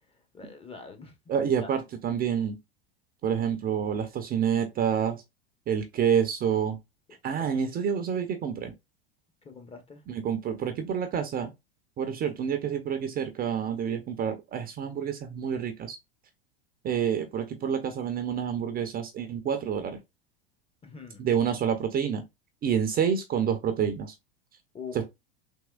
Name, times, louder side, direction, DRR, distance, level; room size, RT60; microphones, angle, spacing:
voice 1, 0.3-1.1 1.6-1.7 7.4-7.5 9.4-10.0 20.8-21.2 24.7-25.0, left 5 dB, 20° left, 0.7 m, -43 dB
voice 2, 1.3-2.6 3.2-5.2 5.7-6.8 7.2-8.7 10.1-11.5 12.0-16.0 16.8-20.0 21.2-22.2 22.6-24.1 24.9-25.1, right 8 dB, 30° right, 0.6 m, -28 dB
3.5 x 2.9 x 2.2 m
hypercardioid pair, 95°, 32 cm